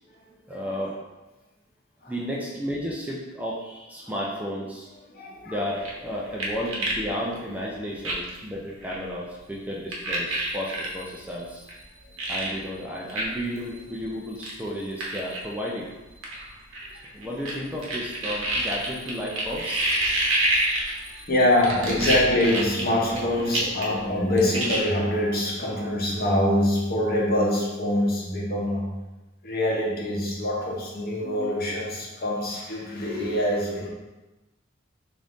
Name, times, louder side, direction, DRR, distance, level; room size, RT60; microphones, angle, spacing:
voice 1, 0.2-0.9 2.1-4.9 5.5-11.9 12.2-16.5 17.1-21.3, equal, 5° right, -4 dB, 0.4 m, -33 dB
voice 2, 5.1-5.6 12.0-12.1 12.4-12.5 21.3-29.0 29.4-33.9, left 1 dB, 50° left, -3 dB, 0.9 m, -24 dB
sound 1, 5.8-7.0 7.3-7.4 8.0-8.4 8.8-9.0 9.9-10.9 11.7-11.8 12.2-12.5 13.1-13.2 13.6-13.7 14.4-14.5 15.0-15.4 16.2-17.5 17.8-21.2 21.6-23.2 23.5-24.0 24.3-24.8, right 2 dB, 75° right, 0.9 m, -27 dB
3.7 x 2.6 x 3.5 m, 1.1 s
head